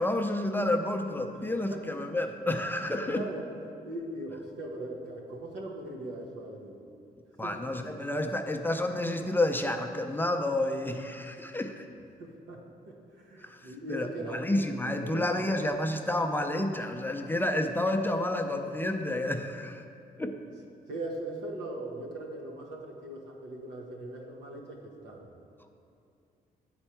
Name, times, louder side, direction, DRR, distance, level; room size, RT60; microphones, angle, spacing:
voice 1, 0.0-3.2 7.4-11.9 13.4-19.8 20.2-20.4, left 1 dB, 10° left, 5 dB, 0.5 m, -30 dB
voice 2, 3.0-3.5 3.8-6.7 7.4-7.5 12.2-14.5 15.1-15.2 20.9-24.8 25.0-25.3, right 1 dB, 85° right, -1 dB, 1.1 m, -40 dB
8.6 x 4.4 x 4.5 m, 2.5 s
cardioid pair, 70°, 17 cm